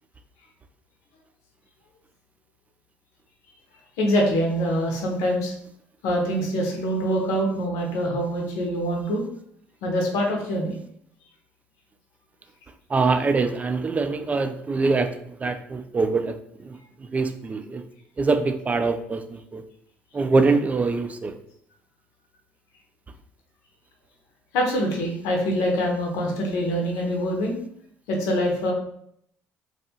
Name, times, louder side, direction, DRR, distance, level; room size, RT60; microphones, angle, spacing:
voice 1, 4.0-5.5 6.0-9.2 9.8-10.7 24.5-27.6 28.1-28.7, equal, 75° left, 0 dB, 0.7 m, -24 dB
voice 2, 12.9-15.1 15.4-16.4 16.7-16.8 17.1-17.8 18.2-19.6 20.1-21.4, right 3 dB, 25° right, 8 dB, 0.3 m, -23 dB
2.6 x 2.3 x 2.8 m, 0.70 s
supercardioid pair, 70°, 6 cm